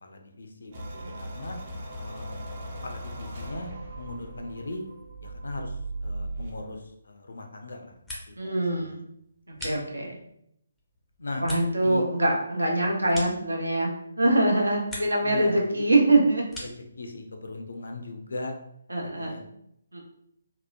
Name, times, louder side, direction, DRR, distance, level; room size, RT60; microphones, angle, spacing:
voice 1, 0.0-1.6 2.0-2.4 2.8-4.8 5.2-7.9 8.3-9.0 10.0-10.1 11.2-11.4 11.8-12.0 15.2-15.6 16.6-18.5 19.0-19.4, left 2 dB, 65° left, 4 dB, 0.4 m, -39 dB
sound 1, 0.7-6.6, right 1 dB, 40° right, 0.6 m, -38 dB
sound 2, 7.7-8.6 8.9-10.3 10.8-14.0 14.4-15.3 15.6-16.9, left 1 dB, 5° left, 0.5 m, -43 dB
voice 2, 8.4-9.1 9.6-10.2 11.4-13.9 14.2-16.4 18.9-19.4 19.9-20.0, right 2 dB, 75° right, -1 dB, 0.7 m, -24 dB
2.8 x 2.1 x 2.4 m, 0.74 s
figure-of-eight pair, 145°, 0 cm